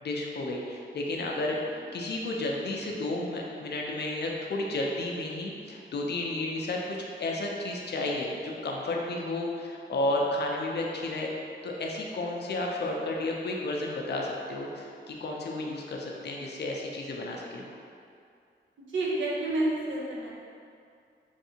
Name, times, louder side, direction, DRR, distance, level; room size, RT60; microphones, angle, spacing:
voice 1, 0.0-1.6 1.9-11.3 11.6-17.7, left 2 dB, 60° left, -1 dB, 0.5 m, -32 dB
voice 2, 18.9-20.3, right 2 dB, 75° right, -5 dB, 0.7 m, -29 dB
3.2 x 2.6 x 2.7 m, 2.4 s
wide cardioid pair, 90°, 20 cm